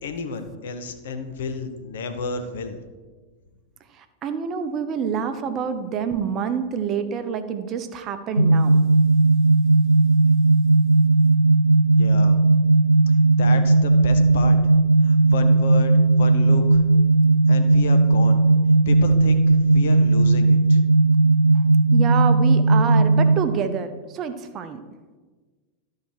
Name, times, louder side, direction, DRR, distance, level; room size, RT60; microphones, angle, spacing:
voice 1, 0.0-2.8 11.9-12.4 13.1-14.6 15.0-16.8 17.5-18.4 18.9-20.8, left 4 dB, 60° left, 7 dB, 0.8 m, -31 dB
voice 2, 4.0-8.8 21.5-21.6 21.9-24.8, right 7 dB, 30° right, 9 dB, 0.7 m, -27 dB
sound 1, 8.4-23.4, right 3 dB, 90° right, 0.3 m, -17 dB
12.5 x 4.7 x 4.8 m, 1.4 s
figure-of-eight pair, 90°, 0 cm